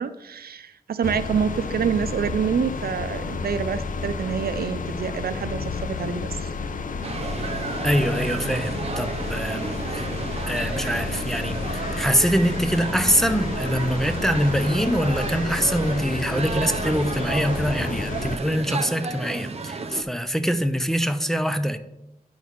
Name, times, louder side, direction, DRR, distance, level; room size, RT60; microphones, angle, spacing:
voice 1, 0.0-6.5, right 7 dB, 85° right, 0.5 m, -27 dB
sound 1, 1.0-18.4, left 4 dB, 60° left, 0.5 m, -31 dB
sound 2, 7.0-20.0, right 4 dB, 45° right, 0.6 m, -32 dB
voice 2, 7.8-10.1 10.5-21.8, equal, 5° left, 0.5 m, -24 dB
9.3 x 4.1 x 4.5 m
wide cardioid pair, 120°, 15 cm